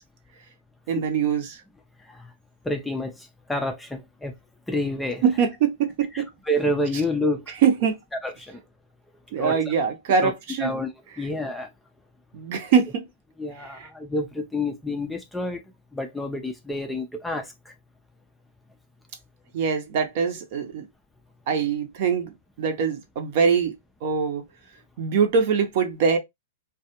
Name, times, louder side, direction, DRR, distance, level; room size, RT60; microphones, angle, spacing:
voice 1, 0.9-1.6 5.2-6.3 7.5-8.0 9.3-10.8 11.2-11.3 12.3-13.0 13.6-13.9 19.5-20.9 21.5-23.7 24.0-24.4 25.0-26.2, right 6 dB, 55° right, 0.7 m, -23 dB
voice 2, 2.6-4.3 4.7-5.2 6.5-7.4 8.2-8.6 9.4-9.6 10.2-10.3 10.6-10.9 11.2-11.7 13.4-15.6 15.9-17.5, left 1 dB, 5° left, 0.4 m, -28 dB
2.3 x 2.2 x 2.8 m
hypercardioid pair, 135°, 0 cm